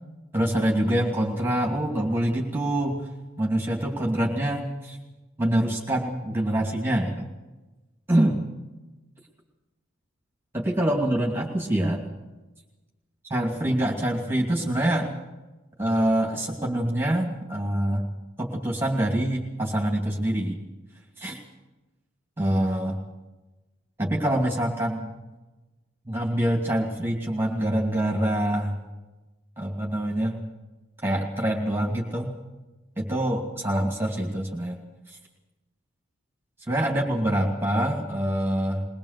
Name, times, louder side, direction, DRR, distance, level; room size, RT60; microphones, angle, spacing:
voice 1, 0.3-3.1 3.4-5.0 5.4-7.3 8.1-8.3 10.5-12.0 13.3-15.1 15.8-18.0 18.4-20.6 21.2-21.4 22.4-23.0 24.0-25.1 26.1-28.7 29.6-30.4 31.0-32.3 33.0-34.8 35.1-35.2 36.7-38.9, right 1 dB, 10° right, 0 dB, 2.6 m, -25 dB
22.0 x 20.5 x 6.8 m, 1.1 s
head